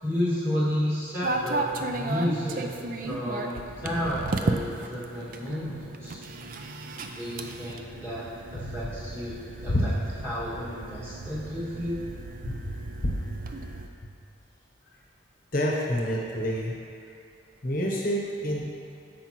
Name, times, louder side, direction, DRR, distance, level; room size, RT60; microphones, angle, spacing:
voice 1, 0.0-2.7 3.0-6.2 7.1-8.3 8.5-9.4 9.6-9.9 10.2-12.0, equal, 15° right, -9 dB, 1.9 m, -31 dB
sound 1, 1.2-13.9, right 2 dB, 45° right, 0.4 m, -34 dB
voice 2, 15.5-16.7 17.6-18.7, equal, 45° left, -2 dB, 0.8 m, -27 dB
14.0 x 4.9 x 3.0 m, 2.5 s
head